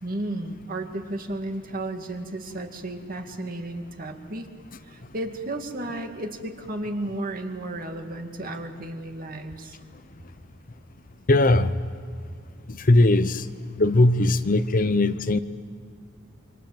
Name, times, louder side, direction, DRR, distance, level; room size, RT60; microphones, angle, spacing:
voice 1, 0.0-4.5 4.8-9.8, right 1 dB, 45° right, 4 dB, 2.3 m, -33 dB
voice 2, 11.3-11.8 12.7-13.5 13.8-15.4, left 2 dB, 45° left, 11 dB, 0.8 m, -19 dB
28.0 x 24.5 x 7.6 m, 2.2 s
head